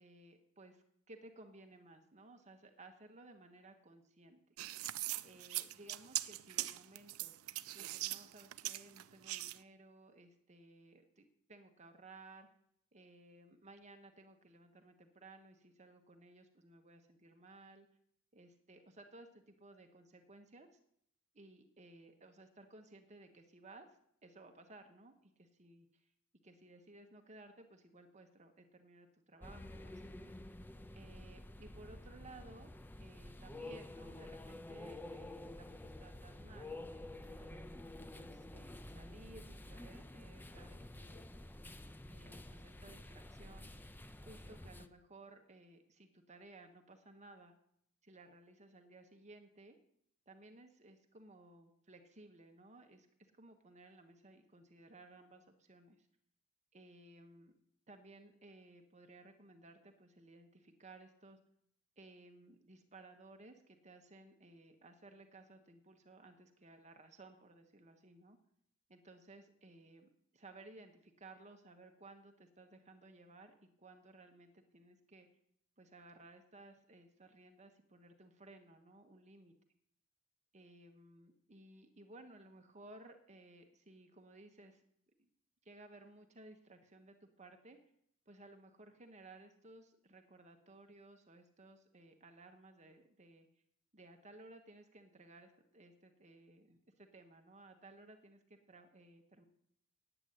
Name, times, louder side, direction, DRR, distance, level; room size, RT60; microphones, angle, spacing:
voice 1, 0.0-4.6 5.2-7.3 7.7-12.5 12.9-17.9 18.3-20.7 21.3-23.9 24.2-26.1 26.4-30.3 30.9-32.7 33.0-37.6 38.1-41.4 42.0-43.7 44.2-47.5 48.0-49.8 50.3-53.1 53.3-56.1 56.7-57.5 57.9-61.4 62.0-68.4 68.9-75.3 75.8-79.5 80.5-84.8 85.2-85.3 85.6-87.8 88.3-93.5 93.9-99.4, right 2 dB, 35° right, 5 dB, 1.2 m, -58 dB
sound 1, 4.6-9.6, right 16 dB, 85° right, 0.4 m, -41 dB
sound 2, 29.4-44.9, left 1 dB, 10° left, 0.5 m, -50 dB
9.2 x 9.0 x 8.2 m, 0.70 s
head